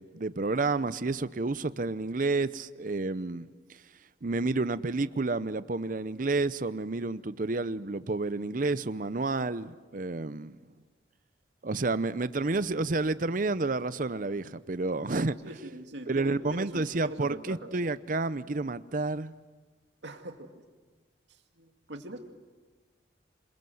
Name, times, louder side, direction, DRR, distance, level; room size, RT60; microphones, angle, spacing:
voice 1, 0.0-3.8 4.2-10.6 11.6-15.4 16.1-19.3, right 3 dB, 45° right, 15 dB, 0.7 m, -30 dB
voice 2, 15.4-17.7 20.0-20.3 21.6-22.2, right 1 dB, 75° right, 4 dB, 2.4 m, -41 dB
26.5 x 22.5 x 7.8 m, 1.4 s
head